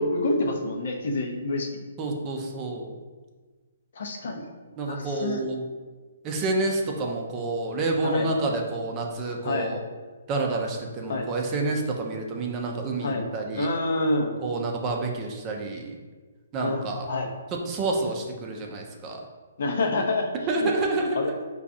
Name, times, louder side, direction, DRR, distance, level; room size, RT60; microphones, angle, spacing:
voice 1, 0.0-1.7 3.9-4.5 4.9-5.4 8.0-8.3 9.4-9.7 11.1-11.3 13.0-13.2 13.6-14.3 16.6-17.3 19.6-20.3 20.6-20.7 21.1-21.3, left 2 dB, 60° left, 2 dB, 0.6 m, -27 dB
voice 2, 2.0-2.9 4.8-5.6 6.2-9.8 10.3-13.7 14.4-16.0 16.5-17.1 17.7-19.2 20.5-21.2, right 2 dB, 25° right, 1 dB, 0.5 m, -28 dB
4.7 x 2.3 x 2.6 m, 1.4 s
hypercardioid pair, 150°, 0 cm